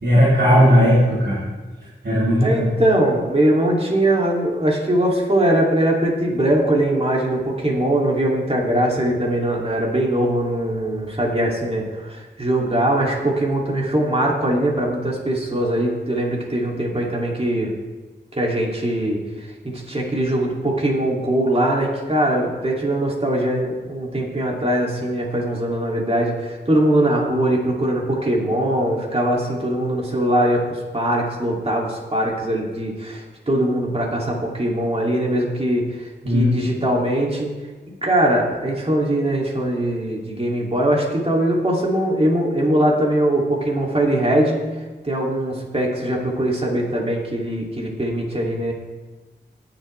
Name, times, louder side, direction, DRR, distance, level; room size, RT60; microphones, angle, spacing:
voice 1, 0.0-1.4 2.0-2.8 36.2-36.5, equal, 65° right, -10 dB, 4.2 m, -16 dB
voice 2, 2.4-17.7 18.3-37.5 38.0-44.6 45.0-48.7, right 1 dB, 35° right, -2 dB, 2.8 m, -21 dB
19.5 x 7.1 x 3.4 m, 1.3 s
wide cardioid pair, 70°, 18 cm